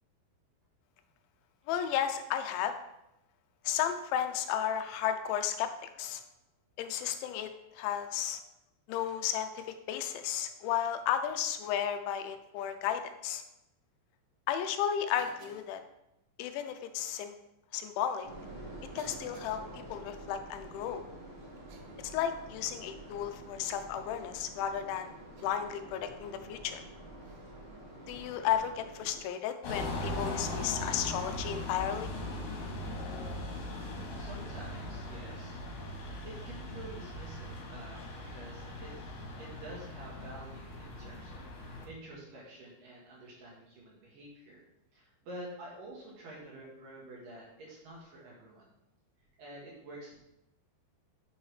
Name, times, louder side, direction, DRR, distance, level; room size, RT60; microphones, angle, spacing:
voice 1, 1.7-2.7 3.6-6.2 6.8-8.4 8.9-13.4 14.5-15.8 16.4-17.4 17.7-18.3 19.0-21.0 22.0-25.1 25.4-26.8 28.1-32.1, left 9 dB, 85° left, 8 dB, 3.0 m, -33 dB
Cough, 15.1-15.7 17.0-17.2 18.1-18.2 19.0-19.6 21.6-22.2 22.6-22.9 24.0-24.3 25.4-25.7 27.2-27.5 29.7-29.9 31.6-31.7, right 6 dB, 90° right, 3.4 m, -57 dB
sound 1, 18.2-29.2, right 1 dB, 35° right, 3.6 m, -48 dB
sound 2, 29.6-41.9, left 1 dB, 60° left, 2.8 m, -39 dB
voice 2, 33.8-35.6 35.9-39.0 39.4-44.6 44.9-48.7 49.4-50.2, right 1 dB, 60° right, -4 dB, 2.6 m, -49 dB
9.8 x 6.4 x 3.3 m, 0.85 s
omnidirectional pair, 5.3 m